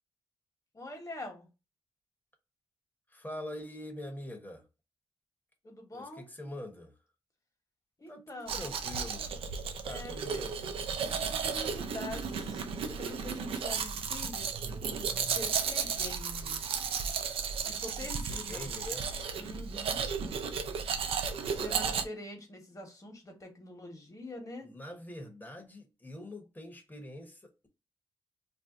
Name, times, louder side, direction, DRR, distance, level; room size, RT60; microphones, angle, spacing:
voice 1, 0.7-1.5 5.6-6.3 8.0-8.6 9.8-10.4 11.0-16.6 17.6-18.7 19.3-20.1 21.5-24.7, left 1 dB, 35° left, 1.3 m, -45 dB
voice 2, 3.1-4.6 5.9-7.0 8.1-9.3 9.8-10.9 18.0-19.1 21.4-22.0 24.6-27.7, left 1 dB, 20° left, 1.0 m, -44 dB
Domestic sounds home sounds, 8.5-22.0, right 6 dB, 85° right, 0.4 m, -34 dB
2.7 x 2.0 x 3.5 m
cardioid pair, 55°, 9 cm